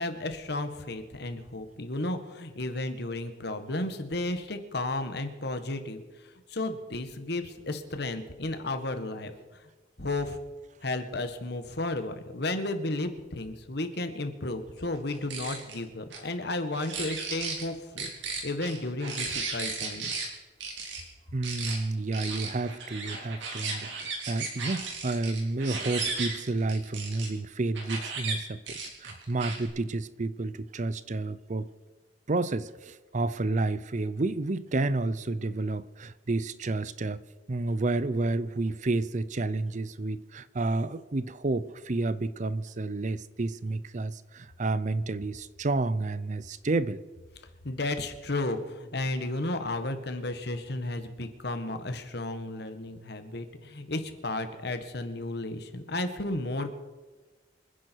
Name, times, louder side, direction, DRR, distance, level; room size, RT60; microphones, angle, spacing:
voice 1, 0.0-9.7 10.0-10.4 10.8-18.1 18.4-20.1 47.6-56.7, left 2 dB, 65° left, 1.7 m, -33 dB
sound 1, 15.1-15.8 16.1-16.2 16.7-17.6 18.0-20.3 20.6-21.0 21.4-21.8 22.1-27.3 27.7-28.3 28.7-29.7, right 4 dB, 85° right, 3.9 m, -35 dB
voice 2, 21.3-31.7 32.3-37.2 37.5-47.0, right 2 dB, 40° right, 0.6 m, -30 dB
27.0 x 10.5 x 4.7 m
head